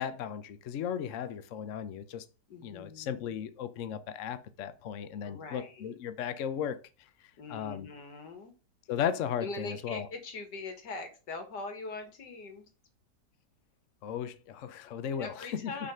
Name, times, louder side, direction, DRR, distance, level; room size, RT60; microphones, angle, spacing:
voice 1, 0.0-2.2 2.6-6.8 7.5-7.9 8.9-10.1 14.0-15.7, left 8 dB, 60° left, 0.9 m, -36 dB
voice 2, 2.5-3.4 5.2-6.0 7.4-8.5 9.4-12.7 15.1-15.9, left 3 dB, 80° left, 2.2 m, -42 dB
6.1 x 4.1 x 5.5 m
omnidirectional pair, 1.8 m